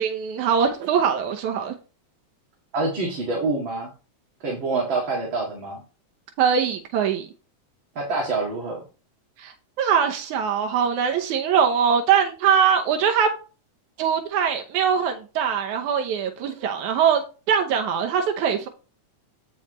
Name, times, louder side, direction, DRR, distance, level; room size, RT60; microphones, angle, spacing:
voice 1, 0.0-1.7 6.4-7.3 9.4-13.3 14.0-17.2 17.5-18.7, right 7 dB, 85° right, 2.3 m, -22 dB
voice 2, 2.7-3.9 4.4-5.8 8.0-8.8, right 3 dB, 45° right, 2.4 m, -26 dB
8.7 x 6.3 x 3.1 m
omnidirectional pair, 3.4 m